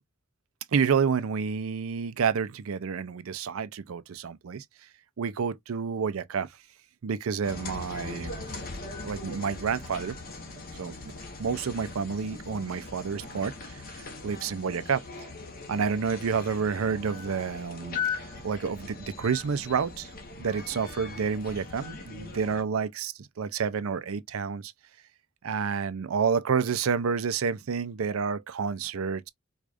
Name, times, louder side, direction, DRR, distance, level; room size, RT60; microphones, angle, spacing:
voice 1, 0.7-4.6 5.2-6.5 7.0-8.5 9.0-10.2 10.8-10.9 11.4-15.0 15.7-20.1 20.4-24.7 25.4-29.3, right 6 dB, 80° right, 0.5 m, -29 dB
sound 1, 7.4-22.6, left 4 dB, 45° left, 1.1 m, -40 dB
4.8 x 2.4 x 2.5 m
head